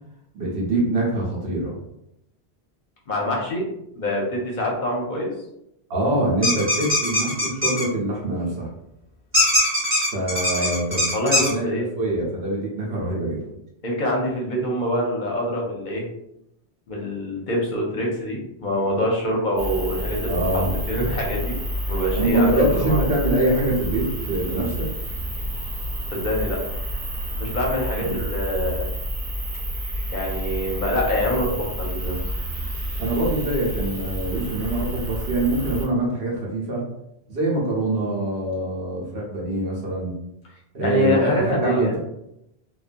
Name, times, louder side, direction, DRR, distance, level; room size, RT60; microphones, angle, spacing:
voice 1, 0.3-1.8 5.9-8.7 10.1-11.7 11.9-13.4 20.3-20.7 22.2-24.9 28.0-28.2 33.0-36.8 37.3-40.1 40.7-42.0, right 1 dB, 75° right, -4 dB, 1.0 m, -24 dB
voice 2, 3.1-5.3 10.6-10.7 11.1-11.9 13.8-16.0 16.9-20.6 20.9-21.6 21.9-23.0 26.1-26.6 27.4-28.9 30.1-32.3 40.8-42.0, left 1 dB, 55° left, -1 dB, 0.7 m, -25 dB
sound 1, 6.4-7.8 9.3-11.5, left 1 dB, 15° right, 0.9 m, -21 dB
sound 2, 19.6-35.9, equal, 55° right, 1.0 m, -29 dB
2.5 x 2.2 x 2.5 m, 0.82 s
omnidirectional pair, 1.1 m